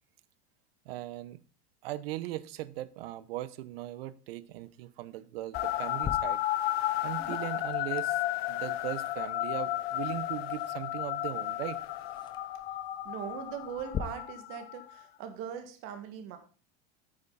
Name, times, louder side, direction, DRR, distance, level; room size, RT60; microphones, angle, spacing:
voice 1, 0.9-1.4 1.8-6.4 7.0-8.2 8.5-11.8, right 15 dB, 75° right, 17 dB, 0.9 m, -39 dB
sound 1, 5.5-15.0, left 14 dB, 85° left, 0.8 m, -33 dB
sound 2, 5.5-14.0, left 8 dB, 15° left, 0.5 m, -45 dB
voice 2, 13.0-16.4, right 8 dB, 45° right, 7 dB, 2.0 m, -40 dB
9.0 x 8.7 x 4.1 m, 0.37 s
supercardioid pair, 160°, 30 cm